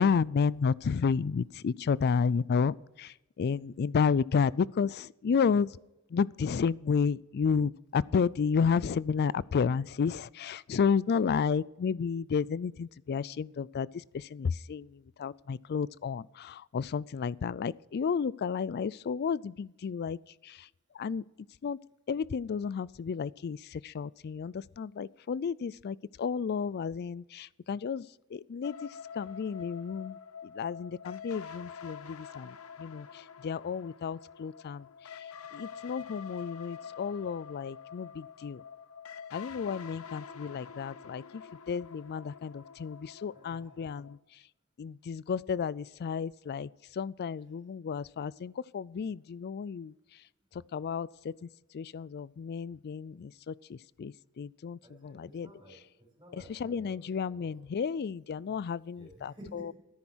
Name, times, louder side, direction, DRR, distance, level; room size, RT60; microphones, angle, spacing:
voice 1, 0.0-5.7 6.1-13.9 14.1-14.9 15.2-20.2 20.4-20.6 21.0-21.2 21.6-21.8 22.1-28.0 28.3-28.9 29.2-30.2 30.6-33.1 33.4-34.8 35.5-38.6 39.3-41.4 41.7-44.2 44.8-46.7 47.0-49.9 50.7-51.3 51.7-55.5 56.6-59.3, left 6 dB, 50° left, 0.3 m, -31 dB
sound 1, 28.6-44.2, left 7 dB, 70° left, 0.7 m, -47 dB
voice 2, 39.6-40.0 43.3-44.0 54.8-57.5 58.9-59.7, right 1 dB, 20° right, 5.4 m, -53 dB
13.5 x 10.0 x 6.1 m
head